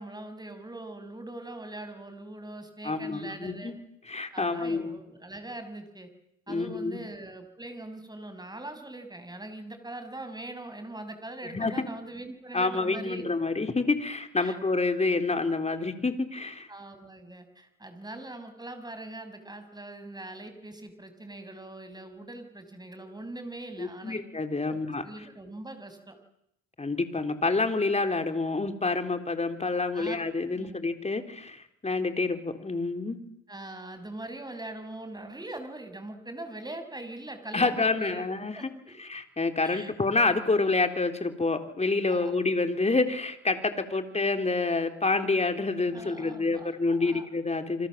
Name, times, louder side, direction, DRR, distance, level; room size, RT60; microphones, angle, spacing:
voice 1, 0.0-3.7 4.3-6.1 6.5-13.2 14.4-14.6 16.7-24.2 24.7-26.2 29.8-30.2 30.5-30.8 33.5-38.9 39.6-39.9 42.1-42.4 45.9-47.3, right 2 dB, 15° right, 8 dB, 6.1 m, -42 dB
voice 2, 2.8-3.7 4.1-5.0 6.5-7.0 11.4-11.8 12.5-16.7 23.8-25.1 26.8-33.2 37.5-38.6 39.0-47.9, left 3 dB, 20° left, 7 dB, 3.8 m, -28 dB
28.5 x 26.0 x 7.5 m, 0.77 s
cardioid pair, 90°, 30 cm